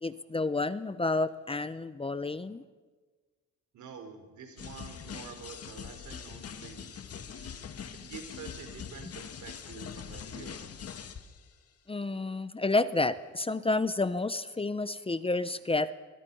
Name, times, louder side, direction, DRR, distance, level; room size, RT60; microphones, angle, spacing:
voice 1, 0.0-2.6 11.9-15.9, left 2 dB, 20° left, 14 dB, 0.9 m, -30 dB
voice 2, 3.7-7.0 7.3-7.5 7.9-10.7, right 6 dB, 75° right, 6 dB, 4.6 m, -47 dB
sound 1, 4.6-11.5, left 7 dB, 50° left, 2.0 m, -43 dB
22.5 x 22.5 x 5.6 m, 1.3 s
cardioid pair, 90°, 30 cm